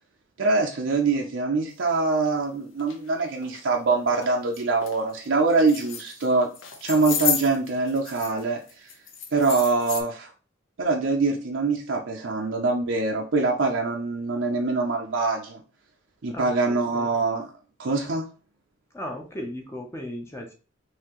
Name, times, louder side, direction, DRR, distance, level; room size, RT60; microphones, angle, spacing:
voice 1, 0.4-6.5 6.8-8.6 9.3-10.3 10.8-15.6 16.2-17.5 17.8-18.2, right 3 dB, 65° right, 1 dB, 0.6 m, -24 dB
sound 1, 2.2-2.3 2.8-3.0 3.4-3.6 4.1-4.3 4.5-5.0 5.5-6.3 6.5-8.4 8.7-10.0, left 8 dB, 70° left, 0.7 m, -31 dB
voice 2, 16.3-17.1 18.9-20.5, left 1 dB, 15° left, 1 dB, 0.6 m, -36 dB
5.6 x 2.8 x 3.0 m, 0.36 s
head